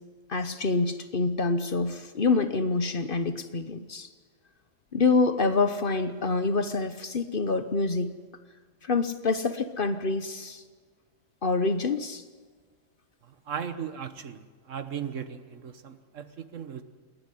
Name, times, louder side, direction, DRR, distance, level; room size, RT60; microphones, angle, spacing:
voice 1, 0.3-4.1 4.9-8.1 8.8-10.6 11.4-12.2, left 3 dB, 45° left, 10 dB, 1.1 m, -26 dB
voice 2, 13.2-16.8, right 7 dB, 70° right, 10 dB, 1.5 m, -37 dB
27.5 x 11.0 x 9.9 m, 1.5 s
omnidirectional pair, 1.4 m